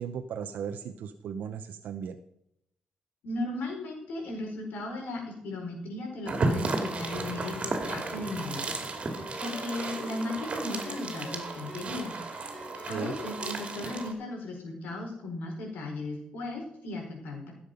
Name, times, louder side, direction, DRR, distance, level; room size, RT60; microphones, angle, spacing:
voice 1, 0.0-2.2 12.9-13.1, right 7 dB, 85° right, 7 dB, 0.8 m, -36 dB
voice 2, 3.2-8.7 8.9-9.1 9.4-12.2 12.9-17.5, left 2 dB, 90° left, 1 dB, 4.4 m, -36 dB
sound 1, 6.2-14.1, right 3 dB, 40° right, 2.5 m, -34 dB
Ringtone, 7.0-13.8, left 3 dB, 50° left, 1.9 m, -47 dB
15.5 x 7.4 x 5.2 m, 0.76 s
cardioid pair, 105°, 3 cm